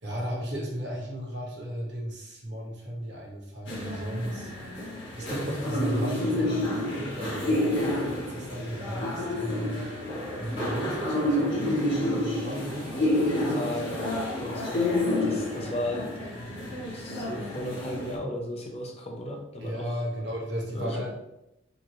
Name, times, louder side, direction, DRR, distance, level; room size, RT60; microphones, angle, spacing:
voice 1, 0.0-4.5 5.1-9.9 10.4-14.0 19.6-21.1, equal, 70° right, -3 dB, 1.3 m, -34 dB
sound 1, 3.7-18.2, left 1 dB, 85° left, 1.5 m, -29 dB
voice 2, 13.6-16.4 16.9-20.0 20.7-21.0, left 1 dB, 35° left, 1 dB, 0.6 m, -35 dB
4.4 x 2.9 x 3.0 m, 0.88 s
head